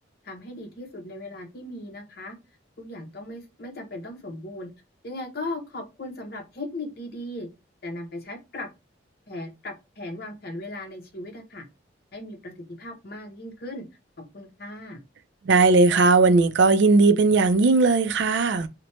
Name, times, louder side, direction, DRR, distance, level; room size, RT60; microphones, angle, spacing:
voice 1, 0.2-2.4 2.8-4.7 5.0-7.5 7.8-8.7 9.3-11.7 12.1-12.5 12.8-13.8 14.3-15.0, left 1 dB, 55° left, 0.8 m, -37 dB
voice 2, 15.4-18.7, right 3 dB, 65° right, 0.4 m, -18 dB
2.9 x 2.1 x 2.9 m
head